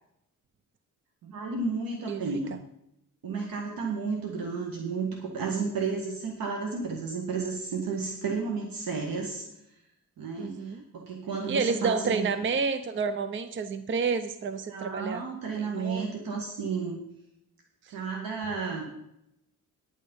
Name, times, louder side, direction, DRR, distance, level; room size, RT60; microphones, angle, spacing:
voice 1, 1.2-2.6 3.2-9.4 10.2-12.3 14.7-17.0 17.9-18.8, right 4 dB, 80° right, 1 dB, 1.8 m, -32 dB
voice 2, 10.4-10.8 11.5-15.2 15.6-16.1, right 5 dB, 35° right, 11 dB, 0.6 m, -29 dB
10.5 x 8.7 x 5.4 m, 0.82 s
cardioid pair, 130°, 34 cm